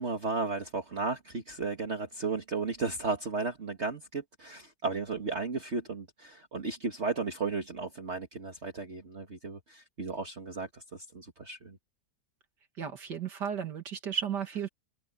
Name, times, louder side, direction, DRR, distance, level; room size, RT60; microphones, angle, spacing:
voice 1, 0.0-11.8, right 4 dB, 40° right, 2.2 m, -34 dB
voice 2, 12.8-14.7, right 7 dB, 70° right, 2.7 m, -34 dB
open air
omnidirectional pair, 1.9 m